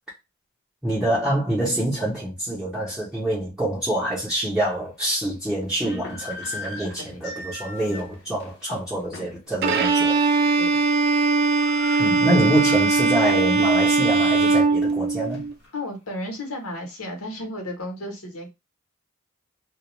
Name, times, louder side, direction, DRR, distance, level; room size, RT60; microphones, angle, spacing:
voice 1, 0.8-10.2 12.0-15.5, right 1 dB, 5° right, 0.7 m, -26 dB
sound 1, 3.9-4.0 4.6-4.7 5.6-9.5 9.9-10.1 10.4-10.8 11.1-11.2 11.4-13.3 13.7-13.8 14.4-15.8, left 2 dB, 50° left, 0.7 m, -40 dB
voice 2, 6.8-7.3 10.6-10.8 15.7-18.5, left 1 dB, 80° left, 1.0 m, -34 dB
Bowed string instrument, 9.6-15.5, right 3 dB, 45° right, 0.3 m, -20 dB
2.3 x 2.2 x 3.0 m
head